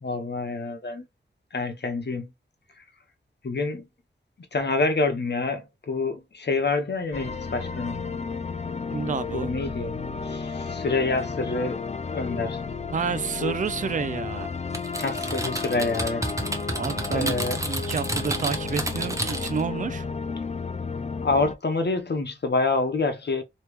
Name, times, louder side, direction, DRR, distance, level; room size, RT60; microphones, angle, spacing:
voice 1, 0.0-1.0 1.5-2.3 3.4-3.8 4.5-7.9 9.3-11.8 12.1-12.6 13.4-13.6 15.0-16.2 17.1-17.6 21.2-23.4, left 3 dB, 55° left, 1.0 m, -27 dB
sound 1, 7.1-21.5, left 4 dB, 35° left, 0.5 m, -33 dB
voice 2, 8.9-9.6 12.9-14.5 16.7-17.3 17.7-20.1, right 6 dB, 40° right, 0.4 m, -29 dB
Typing, 14.7-19.7, right 1 dB, 15° right, 1.0 m, -31 dB
3.3 x 3.0 x 3.1 m
cardioid pair, 50°, 20 cm